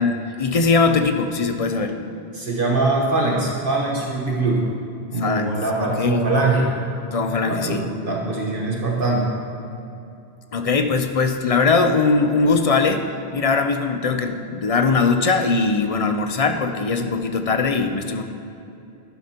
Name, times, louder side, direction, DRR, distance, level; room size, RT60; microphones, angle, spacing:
voice 1, 0.0-2.0 5.2-5.5 5.8-6.2 7.1-7.8 10.5-13.1 13.3-18.2, left 4 dB, 40° left, 6 dB, 0.5 m, -20 dB
voice 2, 2.3-4.7 5.1-6.7 7.4-9.4, right 2 dB, 55° right, -2 dB, 1.3 m, -22 dB
11.5 x 11.0 x 2.9 m, 2.7 s
omnidirectional pair, 1.1 m